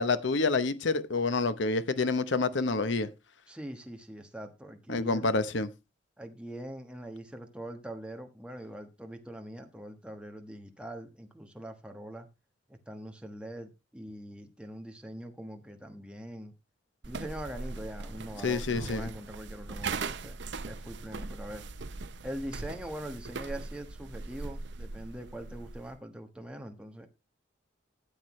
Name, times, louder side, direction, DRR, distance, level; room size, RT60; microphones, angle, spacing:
voice 1, 0.0-3.1 4.9-5.7 18.4-19.1, left 3 dB, 65° left, 0.8 m, -28 dB
voice 2, 3.5-5.3 6.2-12.3 12.7-16.5 17.0-20.4 20.7-21.7 22.2-27.1, right 1 dB, 5° right, 1.2 m, -42 dB
sound 1, 17.0-26.0, right 3 dB, 60° right, 0.7 m, -40 dB
13.0 x 8.1 x 3.1 m
head